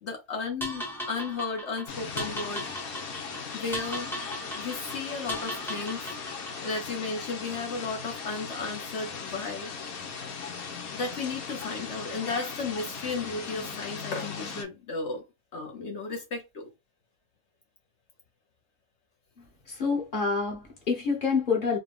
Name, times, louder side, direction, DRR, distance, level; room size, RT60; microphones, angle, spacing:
voice 1, 0.0-2.7 3.5-4.1 4.5-6.1 6.6-9.7 10.9-15.2 15.5-16.7, left 4 dB, 55° left, 1.1 m, -34 dB
sound 1, 0.6-6.8, equal, ahead, 0.8 m, -38 dB
sound 2, 1.9-14.6, left 5 dB, 90° left, 1.4 m, -38 dB
voice 2, 19.7-21.8, left 5 dB, 40° left, 1.3 m, -27 dB
4.1 x 2.3 x 3.4 m
omnidirectional pair, 1.5 m